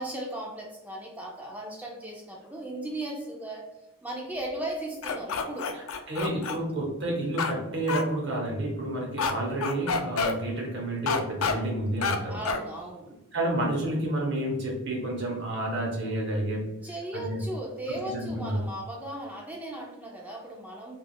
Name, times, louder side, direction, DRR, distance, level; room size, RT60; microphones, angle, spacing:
voice 1, 0.0-3.6 4.0-5.7 12.3-13.1 16.8-21.0, right 1 dB, 5° right, -1 dB, 0.4 m, -37 dB
sound 1, 5.0-6.6 7.4-7.5 7.9-8.0 9.2-9.3 9.6-10.3 11.1-11.5 12.0-12.2 12.4-12.6, left 5 dB, 70° left, 0.4 m, -28 dB
voice 2, 5.7-12.4 13.3-16.7 17.1-17.4 18.1-18.6, right 1 dB, 55° right, -2 dB, 0.9 m, -30 dB
3.4 x 2.3 x 2.2 m, 0.95 s
head